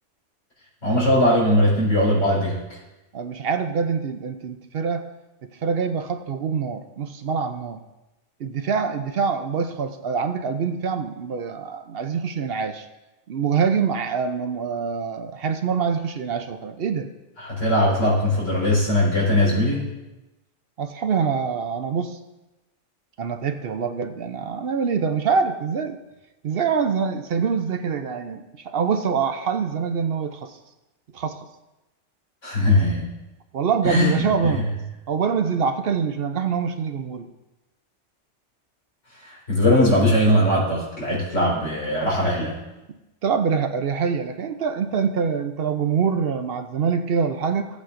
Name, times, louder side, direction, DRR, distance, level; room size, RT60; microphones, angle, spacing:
voice 1, 0.8-2.8 17.4-19.9 32.4-33.1 33.8-34.5 39.2-42.6, left 1 dB, 90° left, -5 dB, 4.4 m, -20 dB
voice 2, 3.1-5.0 5.6-7.8 8.4-12.9 13.3-17.1 20.8-22.2 23.2-26.0 26.4-30.6 31.1-31.5 33.5-34.7 35.1-37.3 43.2-47.7, right 6 dB, 60° right, 8 dB, 0.8 m, -25 dB
16.0 x 8.3 x 2.5 m, 1.0 s
omnidirectional pair, 1.2 m